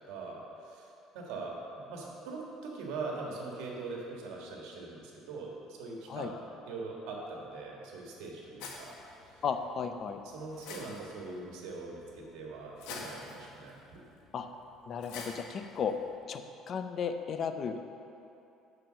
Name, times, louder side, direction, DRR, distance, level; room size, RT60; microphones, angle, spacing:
voice 1, 0.1-0.9 1.1-1.6 1.9-8.9 9.2-9.4 10.2-14.0, right 3 dB, 85° right, -1 dB, 1.6 m, -42 dB
sound 1, 8.6-16.2, left 4 dB, 85° left, 1.1 m, -49 dB
voice 2, 9.4-10.2 14.3-14.5 14.9-16.0 16.3-18.0, left 6 dB, 40° left, 8 dB, 0.4 m, -35 dB
6.8 x 5.9 x 6.2 m, 2.8 s
cardioid pair, 145°, 0 cm